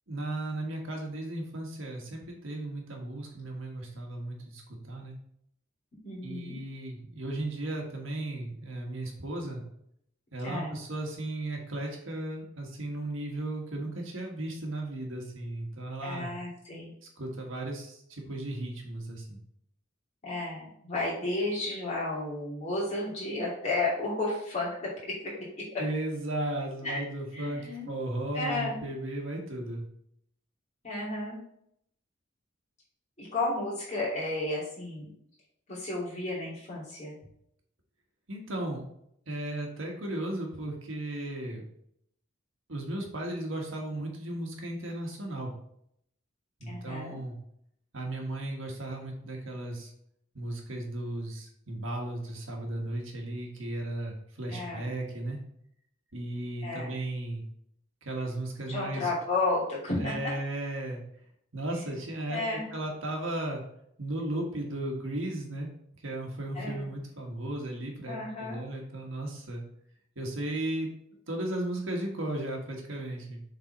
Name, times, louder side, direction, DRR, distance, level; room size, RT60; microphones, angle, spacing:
voice 1, 0.1-5.2 6.2-9.6 10.3-16.3 17.2-19.4 25.8-27.6 27.9-29.8 38.3-38.8 39.3-41.6 42.7-45.5 46.6-47.4 47.9-49.9 50.3-55.4 56.1-57.4 58.0-59.1 60.0-61.0 61.5-63.6 64.0-65.7 66.0-69.6 70.1-70.9 71.3-73.4, right 1 dB, 75° right, 1 dB, 1.5 m, -35 dB
voice 2, 6.0-6.6 10.4-10.8 16.0-16.9 20.2-25.5 26.8-27.0 27.3-27.9 28.3-28.8 30.8-31.4 33.2-35.1 35.7-37.1 46.7-47.2 54.5-54.9 56.6-56.9 58.7-60.1 62.3-62.7 66.5-66.9 68.0-68.6, left 2 dB, 35° left, -6 dB, 2.7 m, -32 dB
7.0 x 3.9 x 4.0 m, 0.72 s
head